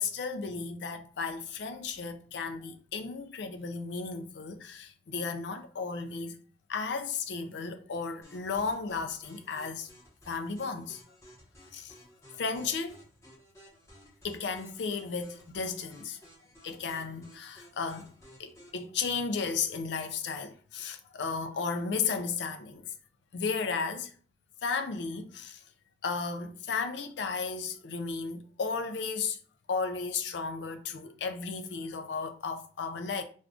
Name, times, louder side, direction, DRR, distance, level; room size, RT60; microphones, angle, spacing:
voice 1, 0.0-6.4 6.7-9.9 10.3-11.0 11.7-11.9 12.3-13.0 14.2-16.2 16.6-18.1 18.4-22.9 23.3-24.1 24.6-25.6 26.0-29.4 29.7-33.2, left 5 dB, 70° left, 0.4 m, -34 dB
sound 1, 8.2-18.8, equal, 15° left, 0.9 m, -56 dB
2.5 x 2.4 x 3.5 m
head